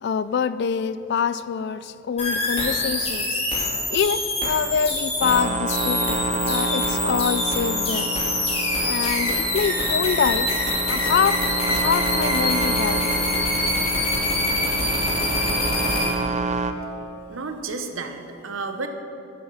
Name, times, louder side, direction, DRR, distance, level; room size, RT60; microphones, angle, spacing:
voice 1, 0.0-8.1 8.8-10.5 10.9-11.4 11.6-13.3, left 6 dB, 55° left, 15 dB, 0.3 m, -25 dB
sound 1, 2.2-16.1, left 2 dB, 30° left, 2.4 m, -25 dB
sound 2, 5.2-16.7, right 3 dB, 35° right, 0.5 m, -29 dB
voice 2, 17.3-18.9, right 4 dB, 80° right, 7 dB, 0.9 m, -31 dB
12.0 x 6.0 x 6.2 m, 3.0 s
head